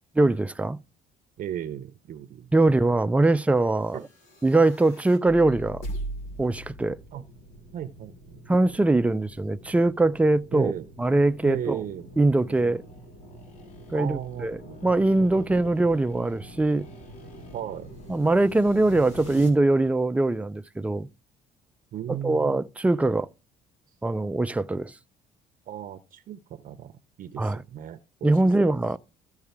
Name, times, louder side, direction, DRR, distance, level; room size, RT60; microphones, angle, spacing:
voice 1, 0.1-0.8 2.5-4.0 4.4-5.8 6.4-7.0 8.5-10.7 11.0-11.8 12.2-12.8 13.9-16.9 18.1-21.1 22.2-23.3 24.0-24.9 27.4-27.6 28.2-29.0, right 2 dB, 10° right, 0.4 m, -22 dB
voice 2, 1.4-2.5 3.9-4.1 7.1-7.2 7.7-8.4 10.5-10.9 11.4-12.1 12.5-12.8 13.9-14.9 15.2-15.9 17.5-17.9 21.9-22.6 25.7-28.3 28.6-28.7, right 10 dB, 55° right, 0.6 m, -36 dB
sound 1, 3.7-19.5, right 1 dB, 90° left, 3.8 m, -43 dB
sound 2, 12.7-17.8, left 4 dB, 45° left, 2.9 m, -54 dB
14.0 x 4.7 x 3.5 m
cardioid pair, 110°, 17 cm